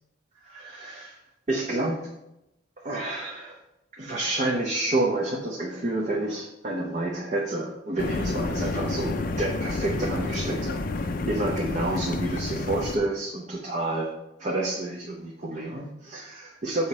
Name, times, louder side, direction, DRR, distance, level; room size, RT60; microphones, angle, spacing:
voice 1, 0.4-1.2 1.5-2.0 2.8-3.6 3.9-14.1 14.4-16.9, right 2 dB, 35° right, -1 dB, 0.7 m, -29 dB
sound 1, 8.0-13.0, left 2 dB, 45° left, 0.4 m, -29 dB
7.2 x 4.2 x 4.9 m, 0.90 s
head